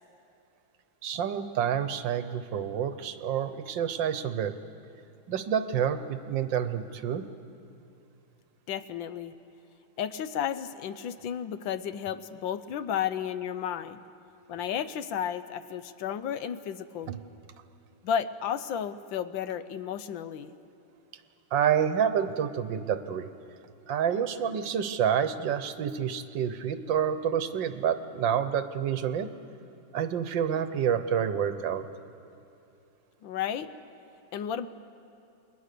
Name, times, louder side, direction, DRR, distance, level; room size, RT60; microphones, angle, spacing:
voice 1, 1.0-4.5 5.3-7.2 17.1-17.2 21.5-23.3 23.9-29.3 29.9-31.8, right 8 dB, 70° right, 11 dB, 1.5 m, -28 dB
voice 2, 8.7-9.3 10.0-14.0 14.5-17.1 18.0-20.5 33.2-33.7 34.3-34.7, left 8 dB, 70° left, 12 dB, 1.4 m, -33 dB
29.5 x 21.5 x 6.8 m, 2.8 s
omnidirectional pair, 2.2 m